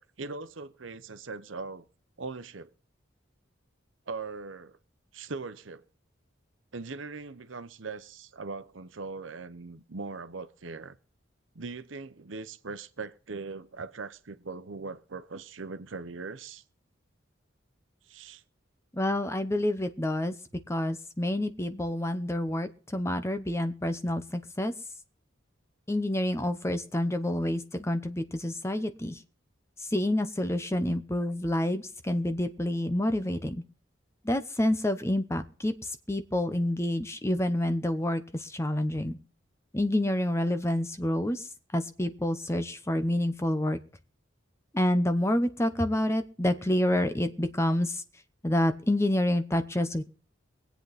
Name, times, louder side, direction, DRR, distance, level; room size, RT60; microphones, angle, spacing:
voice 1, 0.0-1.8 2.2-2.7 4.1-4.8 5.1-5.8 6.7-11.0 11.5-16.6 18.1-18.4, right 4 dB, 80° right, 0.9 m, -40 dB
voice 2, 18.9-20.3 20.7-24.7 25.9-29.2 29.8-33.6 34.2-39.2 39.7-43.8 44.7-48.0 48.4-50.0, left 1 dB, 15° left, 0.8 m, -28 dB
23.5 x 8.1 x 4.1 m
head